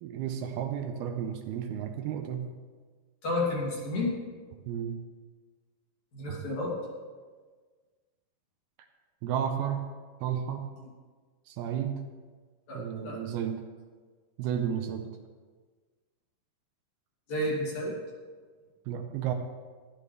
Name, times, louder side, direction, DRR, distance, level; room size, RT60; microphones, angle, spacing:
voice 1, 0.0-2.5 4.7-5.0 6.3-6.4 9.2-9.8 10.2-10.7 11.5-12.0 12.7-13.6 14.4-15.1 18.9-19.3, right 9 dB, 80° right, 5 dB, 2.5 m, -32 dB
voice 2, 3.2-4.2 6.1-6.7 12.7-13.2 17.3-17.9, left 1 dB, 50° left, -4 dB, 3.6 m, -31 dB
14.5 x 11.5 x 3.3 m, 1.5 s
omnidirectional pair, 4.7 m